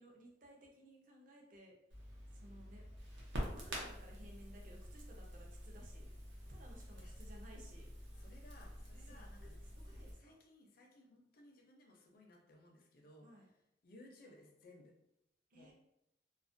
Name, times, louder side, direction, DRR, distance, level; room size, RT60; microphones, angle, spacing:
voice 1, 0.0-1.7 2.3-2.8 3.5-6.1 6.4-7.9 9.0-10.3 13.2-13.5 15.5-15.7, equal, 50° right, 0 dB, 0.5 m, -58 dB
Crackle, 1.9-10.1, equal, 90° right, 0.6 m, -48 dB
voice 2, 8.2-9.5 9.9-13.3 13.8-14.9 15.5-15.7, left 1 dB, 55° left, 1 dB, 0.5 m, -61 dB
2.3 x 2.1 x 2.5 m, 0.82 s
head